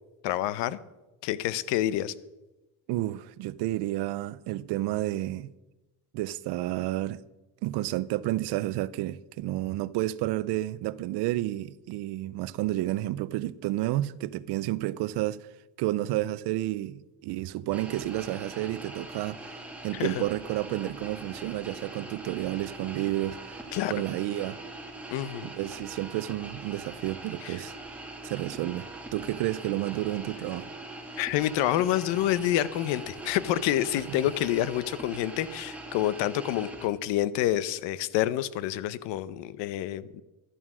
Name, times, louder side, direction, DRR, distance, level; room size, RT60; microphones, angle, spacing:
voice 1, 0.2-0.8 1.2-2.1 19.9-20.2 23.7-23.9 25.1-25.5 27.4-27.6 31.2-40.2, left 13 dB, 85° left, 0.8 m, -28 dB
voice 2, 2.9-5.5 6.1-7.2 7.6-15.5 15.8-19.4 19.8-23.6 23.9-24.6 25.4-27.7 28.2-30.7 34.1-34.2, right 15 dB, 70° right, 0.6 m, -31 dB
sound 1, 17.7-36.9, right 2 dB, 5° right, 2.0 m, -42 dB
13.0 x 11.0 x 6.1 m
cardioid pair, 150°, 42 cm